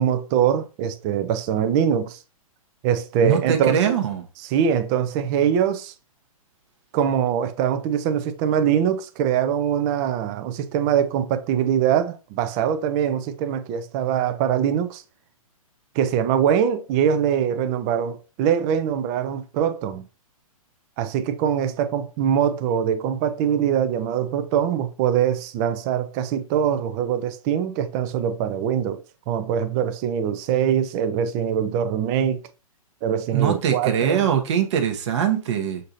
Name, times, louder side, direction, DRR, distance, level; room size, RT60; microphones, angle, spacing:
voice 1, 0.0-2.2 2.8-4.0 4.4-5.9 6.9-15.0 16.0-20.0 21.0-32.4 33.0-34.3, right 8 dB, 30° right, 0.4 m, -23 dB
voice 2, 3.2-4.2 33.3-35.8, right 8 dB, 50° right, 0.9 m, -22 dB
6.5 x 2.7 x 2.6 m
hypercardioid pair, 130°, 18 cm